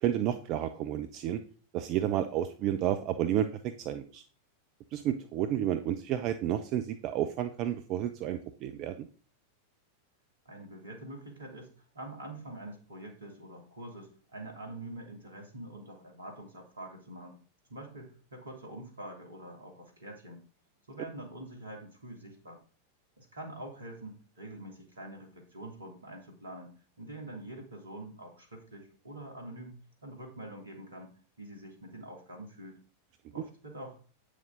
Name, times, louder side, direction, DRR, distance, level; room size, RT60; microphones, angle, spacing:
voice 1, 0.0-1.4 1.7-4.2 4.9-9.1, right 11 dB, 40° right, 9 dB, 0.6 m, -31 dB
voice 2, 10.4-11.7 11.9-17.4 17.7-20.4 20.9-22.6 23.2-26.7 27.0-31.1 31.4-32.8 33.3-34.0, right 1 dB, 75° right, 2 dB, 2.7 m, -45 dB
8.6 x 6.4 x 3.9 m, 0.40 s
figure-of-eight pair, 90°, 0 cm